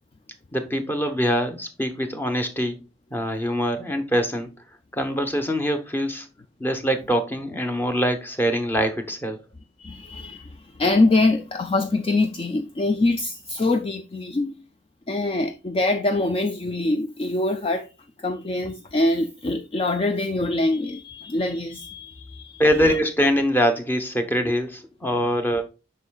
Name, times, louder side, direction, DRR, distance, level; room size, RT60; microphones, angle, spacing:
voice 1, 0.5-2.8 3.1-4.5 4.9-6.3 6.6-9.4 22.6-25.6, equal, 10° left, 0.9 m, -23 dB
voice 2, 9.8-14.5 15.1-17.9 18.2-23.0, left 2 dB, 30° left, 0.4 m, -24 dB
7.9 x 5.6 x 2.3 m
head